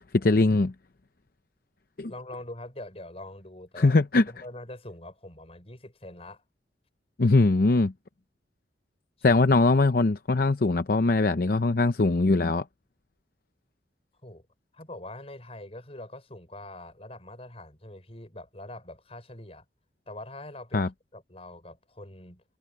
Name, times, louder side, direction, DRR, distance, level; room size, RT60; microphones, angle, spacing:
voice 1, 0.1-0.7 2.0-2.1 3.8-4.3 7.2-7.9 9.2-12.6 20.7-20.9, left 3 dB, 55° left, 0.7 m, -21 dB
voice 2, 2.1-3.9 4.3-6.4 9.3-9.4 14.2-14.5 14.7-19.6 20.1-20.8 21.1-22.4, left 1 dB, 35° left, 6.2 m, -43 dB
head